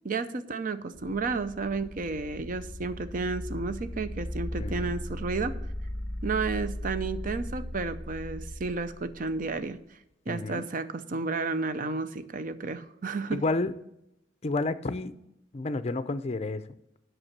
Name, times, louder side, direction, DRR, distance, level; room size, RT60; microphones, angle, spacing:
voice 1, 0.0-5.5 6.2-9.8 10.3-13.5, right 4 dB, 45° right, 12 dB, 0.6 m, -32 dB
sound 1, 0.9-9.7, left 1 dB, 10° left, 0.8 m, -37 dB
voice 2, 10.3-10.7 13.3-13.7 14.4-15.1 15.5-16.6, left 2 dB, 35° left, 13 dB, 0.5 m, -30 dB
8.1 x 6.1 x 7.2 m, 0.83 s
head